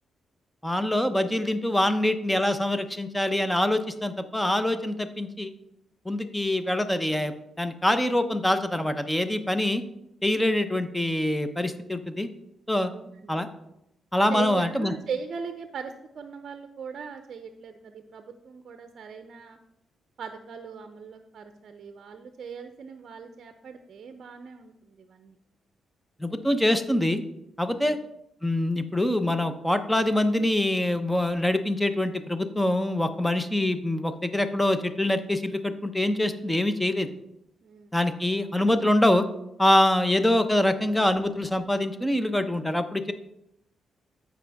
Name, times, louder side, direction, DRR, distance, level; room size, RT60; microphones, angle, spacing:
voice 1, 0.6-5.5 6.0-9.8 10.2-12.3 12.7-12.9 13.3-13.5 14.1-14.9 26.2-27.2 27.6-28.0 28.4-37.1 37.9-39.3 39.6-43.1, left 1 dB, 5° left, 9 dB, 0.7 m, -24 dB
voice 2, 12.8-13.5 14.3-19.6 20.2-25.3 27.7-28.0 37.6-37.9, right 6 dB, 60° right, 7 dB, 0.6 m, -39 dB
14.0 x 5.0 x 3.5 m, 0.81 s
cardioid pair, 100°, 0 cm